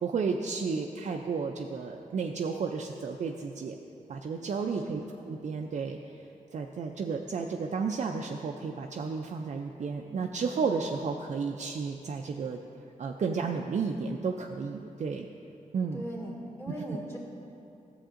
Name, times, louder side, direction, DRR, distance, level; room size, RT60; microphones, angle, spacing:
voice 1, 0.0-3.8 4.1-6.0 6.5-12.6 13.0-15.3 15.7-16.0 16.7-16.8, right 5 dB, 55° right, 1 dB, 0.4 m, -32 dB
voice 2, 4.9-5.2 15.9-17.2, equal, 20° left, -3 dB, 1.9 m, -40 dB
13.0 x 7.1 x 2.5 m, 2.7 s
wide cardioid pair, 110°, 14 cm